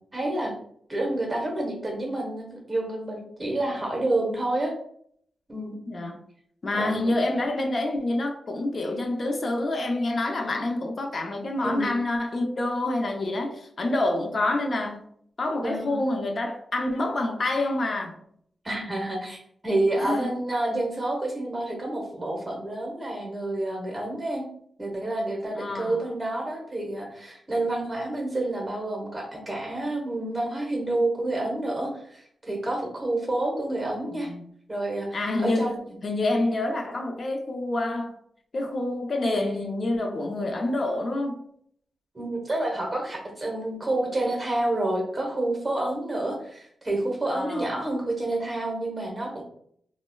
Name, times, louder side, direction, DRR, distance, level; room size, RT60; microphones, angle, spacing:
voice 1, 0.1-0.5 0.9-4.7 5.5-5.8 6.7-7.1 11.6-11.9 15.6-16.0 18.6-24.5 24.8-34.3 34.7-35.8 42.1-49.4, right 2 dB, 30° right, 0 dB, 0.9 m, -29 dB
voice 2, 5.9-6.2 6.6-15.0 15.4-18.2 20.0-20.3 25.5-26.0 34.2-34.4 35.1-35.8 36.0-38.1 38.5-41.4 47.3-47.7, left 2 dB, 55° left, 3 dB, 0.5 m, -27 dB
3.9 x 2.1 x 2.2 m, 0.66 s
cardioid pair, 55°, 0 cm